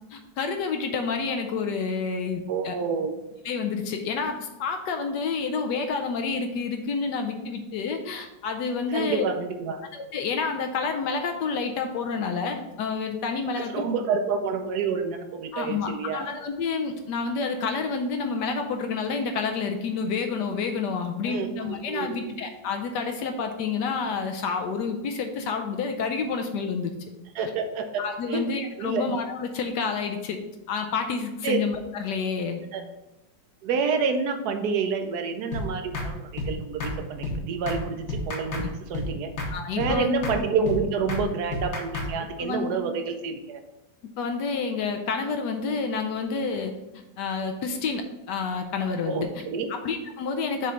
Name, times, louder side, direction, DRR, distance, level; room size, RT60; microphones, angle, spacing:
voice 1, 0.1-2.7 3.4-9.2 9.9-13.8 15.5-26.9 28.0-30.4 30.7-32.6 38.6-38.7 39.5-40.2 42.4-42.8 44.2-46.7 47.2-49.4 49.7-50.7, left 5 dB, 70° left, 5 dB, 1.2 m, -29 dB
voice 2, 2.5-3.1 8.9-9.8 13.6-16.3 21.3-22.4 27.3-28.5 28.8-29.0 31.4-31.6 32.7-32.8 33.6-39.3 39.8-43.6 49.0-49.7, right 5 dB, 65° right, 6 dB, 1.2 m, -28 dB
sound 1, 35.5-35.7 35.9-36.1 36.4-36.5 36.8-37.0 37.2-37.4 37.7-37.8 38.1-38.7 38.9-39.1 39.4-39.5 39.8-40.0 40.2-40.4 40.7-40.8 41.1-41.2 41.5-42.1, left 2 dB, 55° left, 1.5 m, -30 dB
6.7 x 3.2 x 4.9 m, 0.97 s
omnidirectional pair, 2.0 m